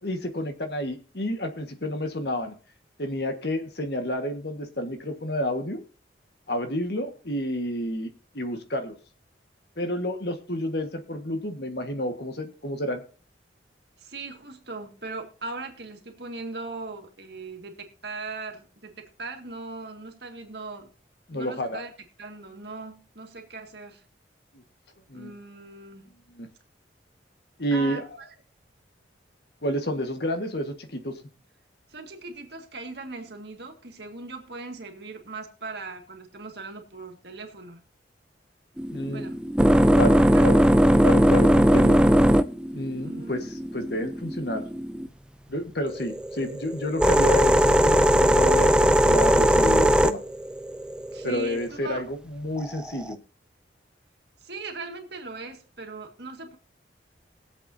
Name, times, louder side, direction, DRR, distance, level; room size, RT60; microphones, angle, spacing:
voice 1, 0.0-2.5 3.0-5.8 6.5-9.0 9.8-13.0 21.3-21.8 25.1-25.3 26.3-26.5 27.6-28.0 29.6-31.2 38.9-39.3 40.0-40.6 41.0-42.0 42.7-43.5 43.7-44.6 45.5-50.2 51.2-53.2, left 1 dB, 60° left, 6 dB, 1.7 m, -30 dB
voice 2, 14.0-20.9 21.3-24.0 25.1-26.2 27.7-28.3 31.9-37.8 39.1-39.4 40.1-40.5 43.0-43.4 51.1-52.0 54.4-56.6, right 3 dB, 60° right, 3 dB, 2.0 m, -39 dB
sound 1, 38.8-45.1 45.9-51.7 52.6-53.1, equal, 5° right, 0.4 m, -19 dB
21.0 x 7.8 x 2.8 m, 0.39 s
head